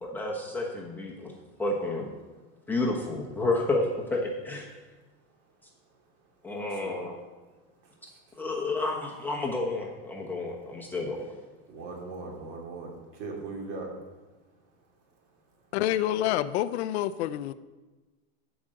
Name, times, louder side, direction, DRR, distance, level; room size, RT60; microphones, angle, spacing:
voice 1, 0.0-1.3 1.6-2.1 2.7-3.9 4.1-4.7 6.4-7.2 8.4-11.3, left 2 dB, 5° left, -2 dB, 1.0 m, -30 dB
voice 2, 11.7-12.9 13.2-13.9, right 3 dB, 45° right, -1 dB, 2.8 m, -38 dB
voice 3, 15.7-17.5, left 13 dB, 90° left, 12 dB, 0.6 m, -27 dB
11.5 x 5.1 x 7.6 m, 1.2 s
supercardioid pair, 170°, 32 cm